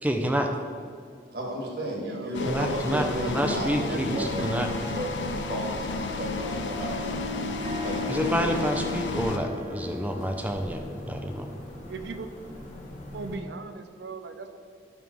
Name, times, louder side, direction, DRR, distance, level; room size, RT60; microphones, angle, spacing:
voice 1, 0.0-0.5 2.5-4.7 8.1-10.8 11.1-11.5, right 1 dB, 10° right, 4 dB, 0.6 m, -28 dB
voice 2, 1.3-7.3 7.8-8.7, equal, 55° right, -2 dB, 1.8 m, -33 dB
voice 3, 2.0-4.5 11.9-12.3 13.1-14.6, right 3 dB, 75° right, 8 dB, 0.6 m, -39 dB
sound 1, 2.3-9.4, left 3 dB, 85° left, 0.6 m, -33 dB
sound 2, 2.7-13.4, left 1 dB, 40° left, 1.3 m, -42 dB
Harp, 4.1-12.7, left 3 dB, 30° right, 1.1 m, -38 dB
10.5 x 3.7 x 6.1 m, 2.2 s
head